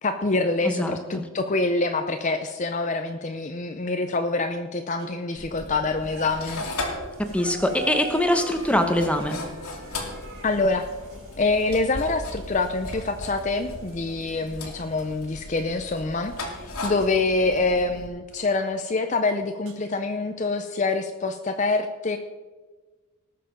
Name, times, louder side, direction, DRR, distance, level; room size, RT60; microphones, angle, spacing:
voice 1, 0.0-6.6 10.4-10.9 11.4-22.2, left 3 dB, 35° left, 7 dB, 0.5 m, -26 dB
voice 2, 0.6-1.0 7.3-9.4, left 1 dB, 5° left, 6 dB, 0.9 m, -23 dB
sound 1, 5.0-5.4 5.9-17.1 18.3-18.4 19.6-19.7, right 2 dB, 70° right, 4.2 m, -44 dB
sound 2, 5.4-18.1, left 2 dB, 90° left, 2.4 m, -37 dB
19.0 x 6.7 x 5.1 m, 1.3 s
head